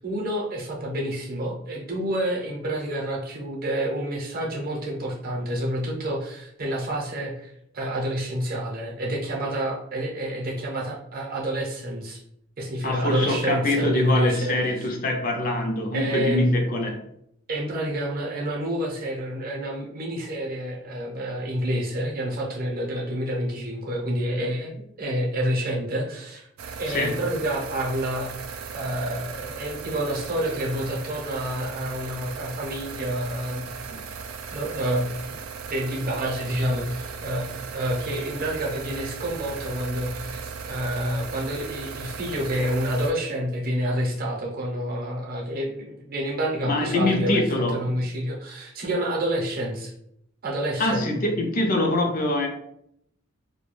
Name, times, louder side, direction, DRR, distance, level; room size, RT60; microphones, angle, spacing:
voice 1, 0.0-12.2 12.6-14.9 15.9-16.4 17.5-26.5 26.8-34.0 34.5-35.4 35.7-47.4 47.7-49.9 50.4-51.2, right 1 dB, 45° right, -1 dB, 0.7 m, -28 dB
voice 2, 12.8-17.0 26.9-27.2 46.7-48.0 50.8-52.5, left 1 dB, 40° left, 2 dB, 0.5 m, -24 dB
sound 1, 26.6-43.1, right 5 dB, 90° right, 0.3 m, -37 dB
2.3 x 2.1 x 3.1 m, 0.73 s
head